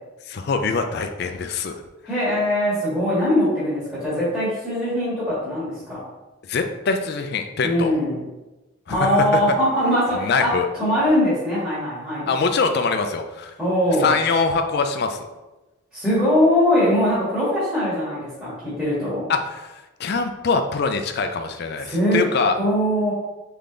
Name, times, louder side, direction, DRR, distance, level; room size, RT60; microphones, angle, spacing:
voice 1, 0.3-1.8 6.5-7.9 8.9-9.4 10.2-10.7 12.3-13.5 14.0-15.3 19.3-19.7 20.0-22.6, left 4 dB, 50° left, 7 dB, 0.3 m, -23 dB
voice 2, 2.0-6.0 7.6-8.2 8.9-10.5 10.8-12.3 13.6-14.1 15.9-19.2 21.8-22.2 22.5-23.1, equal, 5° right, -12 dB, 1.5 m, -21 dB
3.7 x 3.4 x 3.8 m, 1.1 s
head